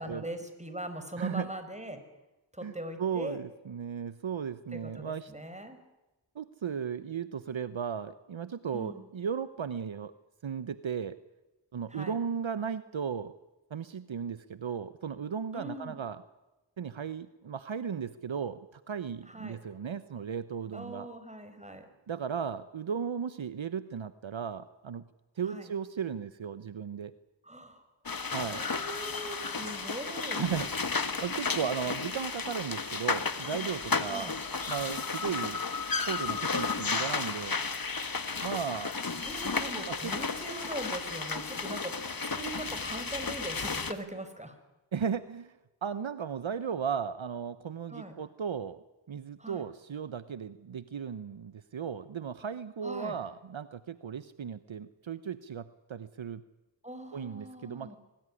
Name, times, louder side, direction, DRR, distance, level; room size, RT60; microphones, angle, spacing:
voice 1, 0.0-2.0 2.5-3.4 4.7-5.8 8.7-9.1 11.9-12.2 15.5-16.0 19.3-19.6 20.7-21.9 25.4-25.7 27.4-27.8 28.5-30.4 34.0-34.3 39.2-44.6 47.9-48.1 49.4-49.6 52.8-53.2 56.8-58.0, right 1 dB, 15° right, 8 dB, 5.1 m, -41 dB
voice 2, 1.2-1.5 2.6-2.7 3.0-5.3 6.3-10.1 10.4-11.2 11.7-13.3 13.7-16.2 16.8-21.1 22.1-25.0 25.4-27.1 28.3-28.6 30.4-30.7 31.2-34.4 34.7-35.6 36.0-37.6 38.4-39.0 39.8-40.1 44.9-56.4 57.1-57.9, right 7 dB, 70° right, 14 dB, 1.0 m, -36 dB
sound 1, 28.1-43.9, left 4 dB, 45° left, 1.7 m, -33 dB
24.5 x 19.0 x 9.9 m, 1.0 s
cardioid pair, 50°, 49 cm